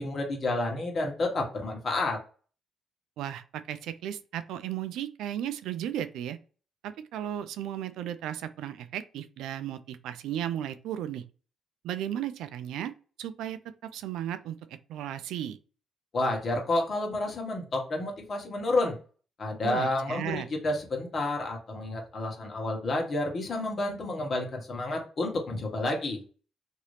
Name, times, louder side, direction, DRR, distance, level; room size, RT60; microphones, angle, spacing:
voice 1, 0.0-2.2 16.1-18.9 19.4-26.2, left 2 dB, 45° left, 1.3 m, -30 dB
voice 2, 3.2-6.4 6.8-11.2 11.8-12.9 13.2-15.6 19.6-20.5, right 11 dB, 85° right, 0.4 m, -35 dB
2.9 x 2.7 x 3.2 m
cardioid pair, 90°, 0 cm